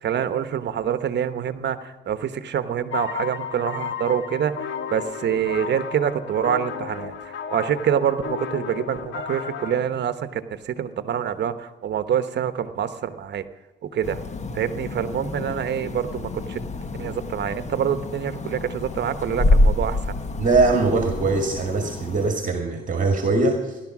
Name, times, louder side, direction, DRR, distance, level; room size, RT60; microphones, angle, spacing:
voice 1, 0.0-13.4 13.8-14.2 14.5-16.6 17.0-20.1, right 9 dB, 60° right, 11 dB, 1.1 m, -26 dB
sound 1, 2.9-9.8, left 7 dB, 75° left, 1.6 m, -33 dB
sound 2, 14.0-22.3, left 2 dB, 35° left, 1.5 m, -26 dB
voice 2, 20.4-23.8, right 3 dB, 40° right, 4 dB, 2.1 m, -21 dB
16.5 x 12.0 x 6.2 m, 1.2 s
cardioid pair, 90°, 20 cm